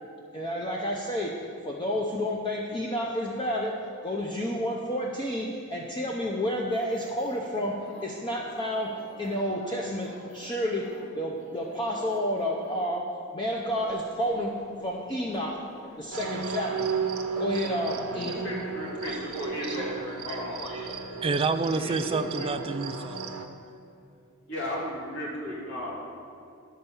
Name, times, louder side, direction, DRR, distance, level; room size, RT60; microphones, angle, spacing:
voice 1, 0.3-10.9 11.2-14.5 14.8-15.6 16.0-16.9 17.4-18.3 19.1-20.9, equal, 20° left, -1 dB, 0.6 m, -31 dB
sound 1, 6.7-12.8, equal, 80° left, 1.6 m, -48 dB
sound 2, 13.7-22.7, equal, ahead, 1.1 m, -48 dB
sound 3, 16.1-23.5, right 5 dB, 85° right, 0.8 m, -34 dB
voice 2, 17.7-19.9 20.2-20.7 21.7-22.7 24.5-25.9, left 1 dB, 65° left, -4 dB, 2.5 m, -36 dB
voice 3, 21.2-23.4, right 4 dB, 25° right, 10 dB, 0.3 m, -28 dB
11.5 x 4.4 x 7.0 m, 2.5 s
head